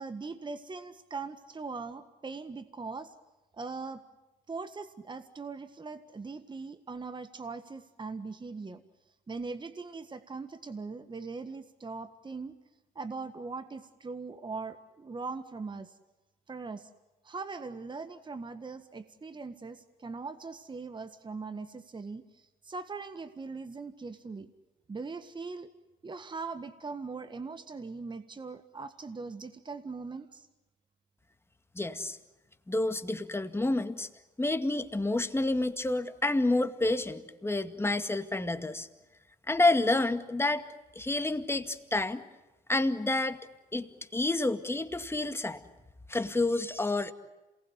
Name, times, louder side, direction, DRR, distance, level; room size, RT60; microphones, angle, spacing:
voice 1, 0.0-3.1 3.5-4.0 4.5-8.8 9.3-12.5 12.9-16.0 16.5-16.9 17.2-24.5 24.9-25.7 26.0-30.5, right 4 dB, 25° right, 10 dB, 1.6 m, -40 dB
voice 2, 31.8-32.2 32.7-34.1 34.4-38.9 39.5-40.6 41.0-42.2 42.7-43.4 43.7-45.6 46.1-47.1, left 2 dB, 15° left, 8 dB, 2.1 m, -29 dB
27.5 x 19.5 x 9.6 m, 1.1 s
supercardioid pair, 65°, 18 cm